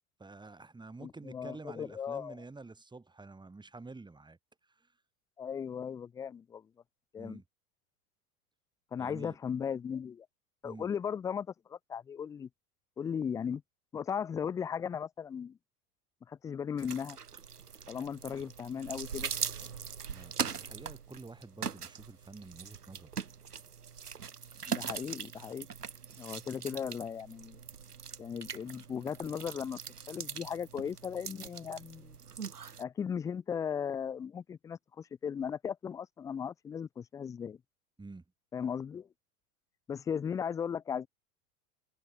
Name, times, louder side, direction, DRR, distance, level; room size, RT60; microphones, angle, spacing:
voice 1, 0.2-4.4 4.8-4.9 7.2-7.4 9.0-9.4 10.6-10.9 20.1-23.1 38.0-38.2, right 3 dB, 10° right, 3.6 m, -49 dB
voice 2, 1.0-2.4 5.4-6.6 7.1-7.4 8.9-10.3 10.6-12.5 13.0-13.6 13.9-15.6 16.3-17.2 17.9-19.3 24.7-25.7 26.2-27.6 28.2-29.8 30.1-32.2 32.8-37.6 38.5-39.1 39.9-41.1, left 7 dB, 10° left, 0.3 m, -37 dB
sound 1, 16.8-32.8, right 6 dB, 85° right, 2.2 m, -41 dB
hypercardioid pair, 90°, 45 cm